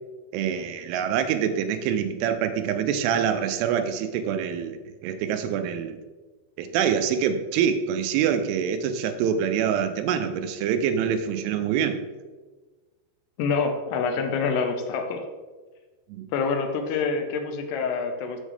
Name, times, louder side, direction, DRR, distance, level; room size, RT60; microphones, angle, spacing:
voice 1, 0.3-4.8 5.0-6.0 6.6-12.0 16.1-16.3, right 8 dB, 80° right, 8 dB, 2.5 m, -25 dB
voice 2, 13.4-15.2 16.3-18.4, left 5 dB, 80° left, 5 dB, 2.7 m, -26 dB
7.2 x 7.1 x 3.4 m, 1.3 s
omnidirectional pair, 5.0 m